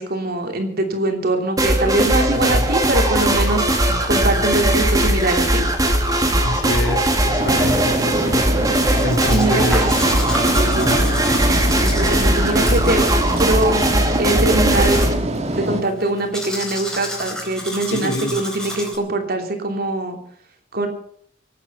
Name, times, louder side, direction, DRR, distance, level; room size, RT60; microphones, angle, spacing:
voice 1, 0.0-5.6 9.3-9.9 10.6-11.1 11.8-13.1 13.4-13.7 14.2-15.0 15.5-20.2 20.7-20.9, right 2 dB, 55° right, 4 dB, 2.9 m, -22 dB
sound 1, 1.6-15.1, right 1 dB, 20° right, 2.0 m, -19 dB
voice 2, 2.3-2.7 6.4-8.4 9.0-9.8 10.8-11.0 17.9-18.4, left 2 dB, 80° left, 5 dB, 2.8 m, -26 dB
sound 2, 7.4-15.8, right 1 dB, 35° right, 1.6 m, -25 dB
Domestic sounds home sounds, 8.7-19.0, left 1 dB, 5° left, 4.0 m, -32 dB
25.5 x 9.0 x 5.5 m, 0.64 s
head